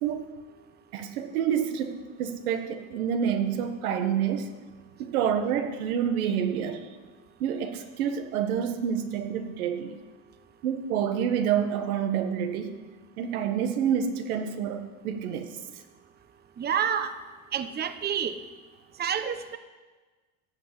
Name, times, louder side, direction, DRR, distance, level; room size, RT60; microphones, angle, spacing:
voice 1, 0.0-0.3 0.9-4.5 5.0-6.9 7.4-9.9 10.6-12.8 13.2-15.6, right 8 dB, 85° right, 7 dB, 1.5 m, -28 dB
voice 2, 16.6-17.1 17.5-18.3 19.0-19.6, right 8 dB, 25° right, 10 dB, 0.9 m, -28 dB
15.0 x 5.9 x 9.7 m, 1.3 s
supercardioid pair, 110°, 42 cm